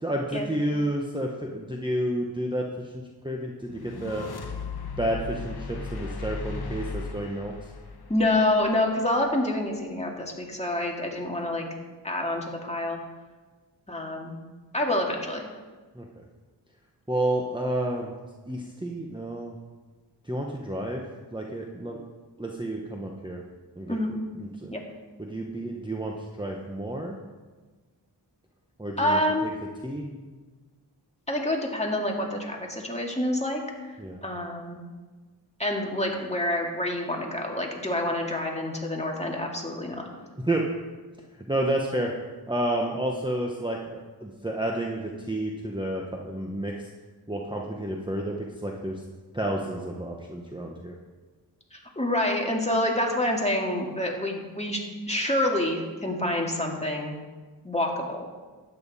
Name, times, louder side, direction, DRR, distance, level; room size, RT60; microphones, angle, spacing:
voice 1, 0.0-2.6 3.2-4.3 5.0-7.5 15.9-16.2 17.1-18.1 18.5-19.5 20.3-21.0 21.3-22.0 22.4-23.4 23.8-24.0 24.4-24.7 25.2-27.2 28.8-29.5 29.8-30.2 34.0-34.2 40.4-40.7 41.5-42.1 42.5-46.7 47.3-49.0 49.3-50.9, right 1 dB, 10° right, 0 dB, 1.1 m, -30 dB
sound 1, 3.7-9.0, left 4 dB, 60° left, 1.0 m, -36 dB
voice 2, 8.1-11.6 12.0-13.0 13.9-14.3 14.7-15.5 23.9-24.1 24.7-24.8 29.0-29.5 31.3-33.6 34.2-34.8 35.6-40.1 51.7-54.8 55.1-57.1 57.6-58.3, left 1 dB, 15° left, 0 dB, 2.1 m, -27 dB
12.5 x 9.3 x 4.2 m, 1.3 s
wide cardioid pair, 50°, 43 cm